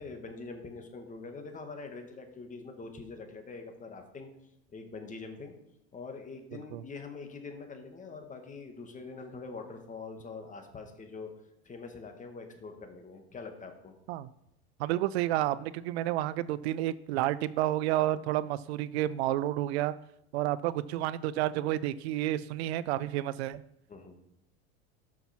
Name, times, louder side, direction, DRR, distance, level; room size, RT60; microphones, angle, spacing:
voice 1, 0.0-4.3 4.7-5.5 5.9-11.3 11.6-14.0 23.9-24.2, left 4 dB, 25° left, 5 dB, 1.8 m, -44 dB
voice 2, 14.8-19.9 20.3-23.6, right 14 dB, 75° right, 17 dB, 0.5 m, -30 dB
13.0 x 5.9 x 4.5 m, 0.80 s
supercardioid pair, 105°, 32 cm